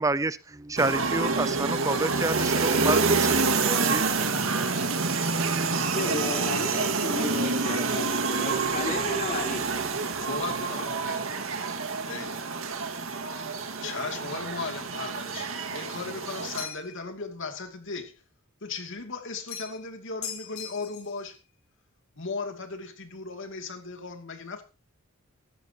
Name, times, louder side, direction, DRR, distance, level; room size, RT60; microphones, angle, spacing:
voice 1, 0.0-4.1, right 3 dB, 15° right, 0.6 m, -29 dB
sound 1, 0.8-16.6, right 4 dB, 65° right, 2.0 m, -27 dB
voice 2, 5.9-9.6 11.0-11.2, left 2 dB, 40° left, 3.6 m, -33 dB
voice 3, 10.3-11.3 12.0-12.5 13.8-18.2 18.6-21.4 22.2-24.6, left 4 dB, 60° left, 2.7 m, -37 dB
sound 2, 16.5-17.0 19.5-19.9 20.2-21.2, left 7 dB, 90° left, 6.8 m, -39 dB
17.0 x 14.0 x 3.0 m
head